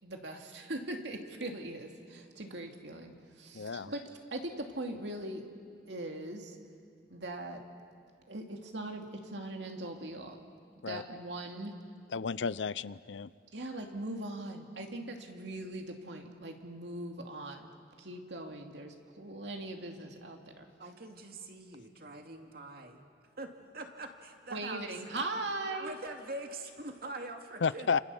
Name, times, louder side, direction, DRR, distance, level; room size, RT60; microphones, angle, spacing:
voice 1, 0.0-4.0 4.3-5.4 5.9-6.6 7.1-7.6 8.3-10.4 10.9-11.7 13.5-17.7 18.0-20.7 24.5-25.9, right 2 dB, 70° right, 3 dB, 2.6 m, -40 dB
voice 2, 3.5-3.9 10.8-11.0 12.1-13.3 27.6-28.0, left 5 dB, 85° left, 17 dB, 0.6 m, -32 dB
voice 3, 20.8-23.0 23.4-24.9 25.7-27.9, right 2 dB, 55° right, 4 dB, 2.4 m, -44 dB
29.0 x 27.5 x 7.1 m, 2.3 s
head